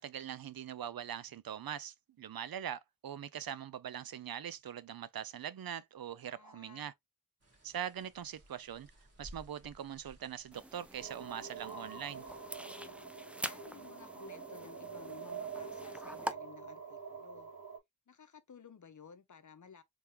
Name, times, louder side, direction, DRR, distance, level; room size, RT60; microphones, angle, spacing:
voice 1, 0.0-6.9 7.6-8.9 9.2-12.2, right 9 dB, 70° right, 0.5 m, -42 dB
voice 2, 6.2-6.9 12.3-13.0 13.4-17.5 18.1-19.8, left 6 dB, 55° left, 0.7 m, -56 dB
sound 1, 7.4-12.6, equal, 40° right, 1.6 m, -59 dB
sound 2, 10.5-16.3, right 1 dB, 5° right, 0.4 m, -46 dB
sound 3, 11.0-17.8, right 5 dB, 85° right, 1.7 m, -46 dB
3.4 x 3.4 x 2.8 m
wide cardioid pair, 65°, 37 cm